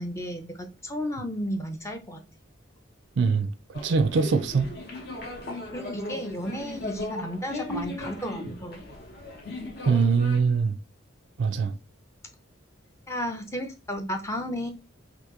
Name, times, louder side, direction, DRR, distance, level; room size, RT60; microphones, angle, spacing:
voice 1, 0.0-2.2 5.5-8.8 13.1-14.7, equal, 15° left, 0.5 m, -33 dB
voice 2, 3.2-4.7 9.9-10.7 11.4-11.7, right 5 dB, 60° right, 0.4 m, -23 dB
sound 1, 3.7-10.4, left 1 dB, 55° left, 0.8 m, -37 dB
2.9 x 2.6 x 3.6 m
head